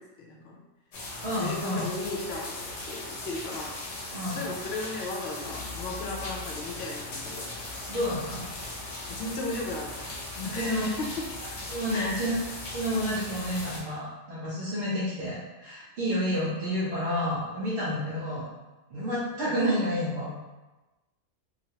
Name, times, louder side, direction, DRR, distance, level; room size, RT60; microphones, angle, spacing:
voice 1, 0.2-0.6 1.4-3.8 4.1-7.5 9.1-11.3 11.9-12.3, left 2 dB, 65° left, -2 dB, 0.8 m, -36 dB
sound 1, 0.9-13.8, left 2 dB, 85° left, 1.1 m, -38 dB
voice 2, 1.2-1.9 4.1-4.4 7.9-8.4 10.5-10.9 11.7-12.3 12.7-18.5 18.9-20.3, equal, 65° right, -8 dB, 0.9 m, -30 dB
3.0 x 2.3 x 2.8 m, 1.1 s
omnidirectional pair, 1.2 m